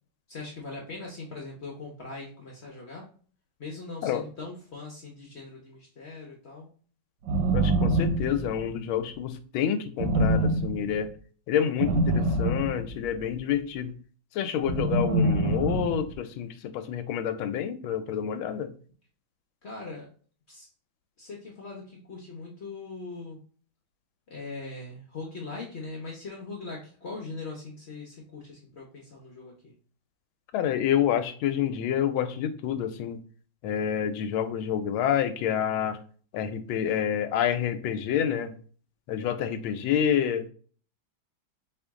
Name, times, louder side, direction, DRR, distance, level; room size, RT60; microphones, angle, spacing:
voice 1, 0.3-3.1 3.6-6.7 19.6-20.1 20.5-20.7 21.2-23.4 24.3-29.7, left 3 dB, 55° left, -1 dB, 0.7 m, -40 dB
sound 1, 7.2-8.7 10.0-11.0 11.8-13.3 14.6-16.1, right 2 dB, 80° right, 1.5 m, -25 dB
voice 2, 7.5-11.1 11.5-13.9 14.3-18.7 30.5-33.2 33.6-36.0 36.3-38.5 39.1-40.4, left 9 dB, 90° left, 10 dB, 1.4 m, -28 dB
4.3 x 2.9 x 3.5 m, 0.43 s
omnidirectional pair, 2.2 m